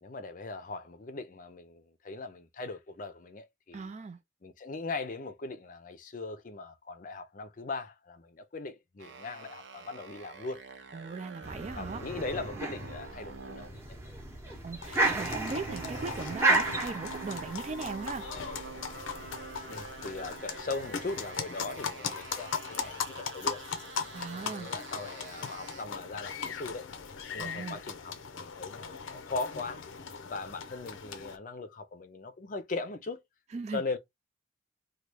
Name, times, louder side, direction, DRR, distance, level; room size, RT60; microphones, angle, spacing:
voice 1, 0.0-3.9 4.4-10.6 11.8-14.0 19.7-23.6 24.3-26.9 27.3-29.9 30.2-33.2 33.7-34.0, left 3 dB, 40° left, 0.5 m, -39 dB
voice 2, 3.7-4.2 10.9-12.0 14.6-18.3 24.1-24.7 27.4-27.8 33.5-33.8, right 4 dB, 35° right, 0.3 m, -38 dB
sound 1, 9.0-13.7 15.6-25.8, right 5 dB, 65° right, 0.7 m, -47 dB
sound 2, 11.4-20.5, right 2 dB, 10° right, 0.8 m, -34 dB
sound 3, 14.8-31.4, left 6 dB, 85° left, 0.6 m, -39 dB
2.9 x 2.3 x 3.3 m
head